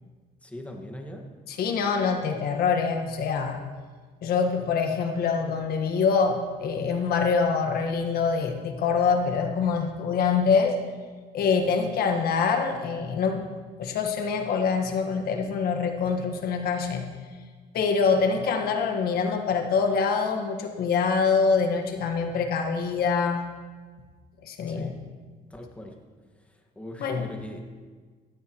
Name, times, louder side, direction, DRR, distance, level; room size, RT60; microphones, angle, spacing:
voice 1, 0.4-1.2 24.7-24.9 25.5-26.0 26.8-27.6, left 1 dB, 10° left, 1 dB, 1.8 m, -40 dB
voice 2, 1.5-3.6 4.2-10.8 11.3-13.4 13.8-17.1 17.7-23.4 24.4-24.9 27.0-27.3, left 5 dB, 65° left, 4 dB, 1.6 m, -25 dB
16.5 x 13.0 x 3.1 m, 1.5 s
cardioid pair, 110°, 17 cm